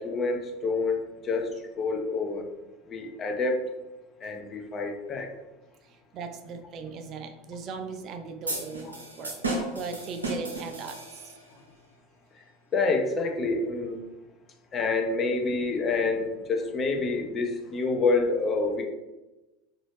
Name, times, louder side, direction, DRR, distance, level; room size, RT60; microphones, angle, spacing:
voice 1, 0.0-2.5 2.9-3.6 4.2-5.3 12.4-12.5 12.7-14.0 14.7-18.8, left 3 dB, 30° left, 3 dB, 0.6 m, -27 dB
voice 2, 6.1-11.4, right 4 dB, 45° right, 7 dB, 0.4 m, -38 dB
sound 1, 8.5-11.5, right 2 dB, 90° right, 0.7 m, -34 dB
3.9 x 2.6 x 3.1 m, 1.1 s
figure-of-eight pair, 80°, 0 cm